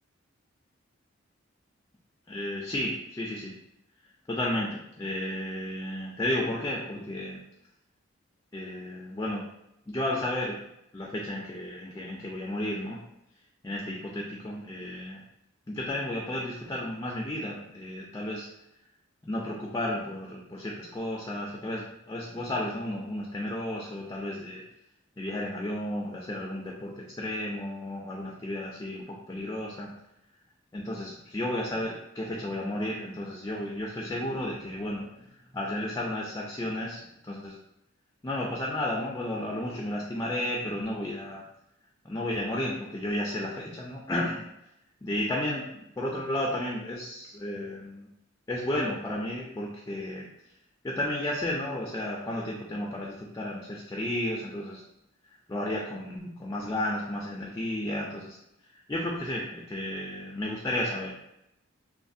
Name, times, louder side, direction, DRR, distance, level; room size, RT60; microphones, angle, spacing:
voice 1, 2.3-3.5 4.3-7.4 8.5-9.4 9.9-10.6 10.9-13.0 13.6-15.2 15.7-18.5 19.2-24.6 25.2-29.9 30.7-35.1 35.5-37.6 38.2-41.4 42.0-44.4 45.0-48.1 48.5-50.3 50.8-54.8 55.5-58.4 58.9-61.2, left 1 dB, 20° left, -3 dB, 0.3 m, -33 dB
3.1 x 2.1 x 2.6 m, 0.84 s
head